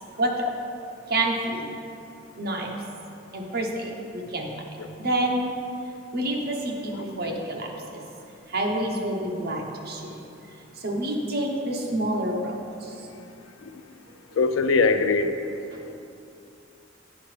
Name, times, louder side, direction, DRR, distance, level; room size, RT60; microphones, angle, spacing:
voice 1, 0.2-0.5 1.1-1.7 2.4-2.7 3.3-4.5 5.0-5.5 6.1-8.0 8.5-10.2 10.7-13.1 15.7-15.8, right 1 dB, 55° right, 0 dB, 0.9 m, -28 dB
voice 2, 14.4-15.3, left 4 dB, 80° left, 9 dB, 0.4 m, -20 dB
9.3 x 5.3 x 3.3 m, 2.7 s
head